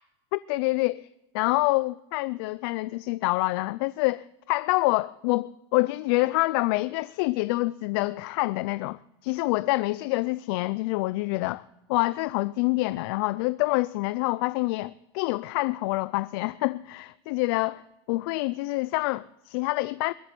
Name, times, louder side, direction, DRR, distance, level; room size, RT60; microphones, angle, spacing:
voice 1, 0.3-1.1 1.3-11.6 11.9-20.1, left 21 dB, 70° left, 0.4 m, -27 dB
22.0 x 8.1 x 6.0 m
supercardioid pair, 140°, 13 cm